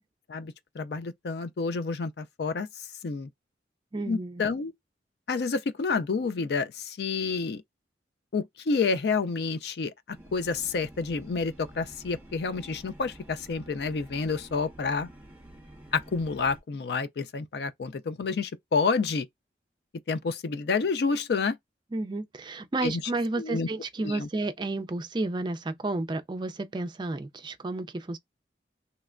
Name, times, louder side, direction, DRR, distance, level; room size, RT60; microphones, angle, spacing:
voice 1, 0.3-2.7 3.0-3.3 4.1-4.7 5.3-7.6 8.3-9.9 10.3-15.1 15.9-19.3 20.1-21.6 22.8-23.0 23.4-23.7 24.0-24.3, left 4 dB, 60° left, 0.4 m, -29 dB
voice 2, 3.9-4.4 21.9-28.2, right 2 dB, 25° right, 0.4 m, -31 dB
sound 1, 10.1-16.6, right 1 dB, 10° right, 1.4 m, -49 dB
3.2 x 2.9 x 2.4 m
head